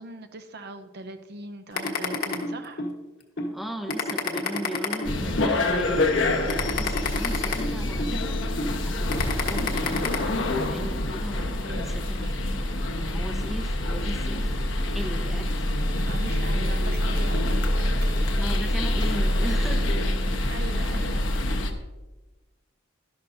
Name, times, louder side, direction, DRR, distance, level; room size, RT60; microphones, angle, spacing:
voice 1, 0.0-2.8 11.7-12.4 16.0-18.3 20.3-21.3, right 2 dB, 55° right, 8 dB, 0.7 m, -40 dB
sound 1, 1.8-2.9 3.4-3.5 3.9-5.5 6.0-6.1 6.5-8.1 8.6-8.7 9.1-10.2, left 3 dB, 55° left, 1.4 m, -28 dB
voice 2, 3.5-8.6 8.8-12.5 12.9-15.5 18.4-20.0 20.7-20.9, equal, ahead, 4 dB, 0.9 m, -37 dB
sound 2, 5.0-21.7, left 1 dB, 70° left, 1.1 m, -26 dB
12.5 x 11.5 x 2.7 m, 1.1 s
head